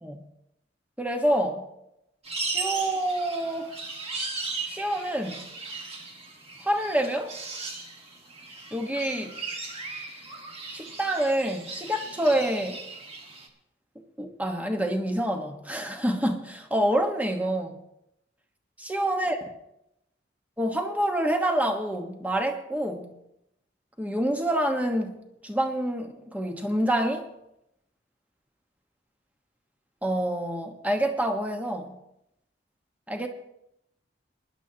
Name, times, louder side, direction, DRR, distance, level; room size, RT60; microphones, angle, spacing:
voice 1, 1.0-1.6 2.5-3.7 4.7-5.5 6.6-7.3 8.7-9.4 10.7-12.8 14.2-17.8 18.8-19.4 20.6-23.1 24.0-27.3 30.0-32.0 33.1-33.3, right 1 dB, 10° right, 4 dB, 1.2 m, -27 dB
sound 1, 2.2-13.5, right 3 dB, 35° right, 1.6 m, -37 dB
22.5 x 11.0 x 2.9 m, 0.83 s
head